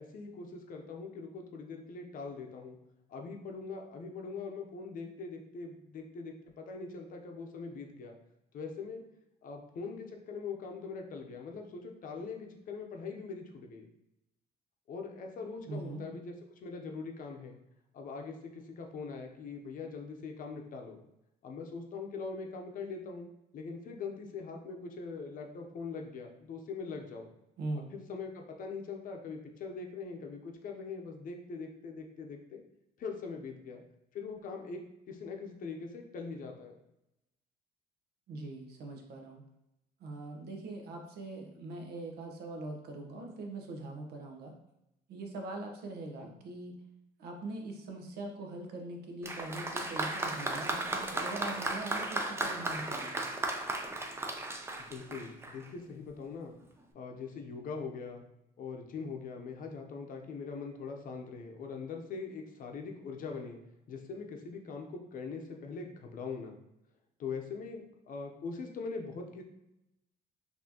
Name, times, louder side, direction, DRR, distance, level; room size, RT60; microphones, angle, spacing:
voice 1, 0.0-2.8 3.1-8.1 8.5-9.0 9.4-13.8 14.9-16.3 16.6-17.6 17.9-21.0 21.4-23.3 23.5-27.3 27.9-32.6 33.0-33.8 34.1-34.8 35.1-36.7 46.2-46.3 54.8-56.6 56.9-58.2 58.6-63.6 63.9-66.6 67.2-69.4, left 4 dB, 55° left, 3 dB, 0.7 m, -42 dB
voice 2, 15.7-16.1 27.6-27.9 38.3-39.4 40.0-44.5 45.1-46.8 47.2-53.2, right 2 dB, 70° right, 3 dB, 0.8 m, -42 dB
Applause, 49.2-55.7 56.6-56.7, right 2 dB, 15° right, 0.4 m, -35 dB
4.3 x 2.7 x 2.8 m, 0.86 s
cardioid pair, 110°, 17 cm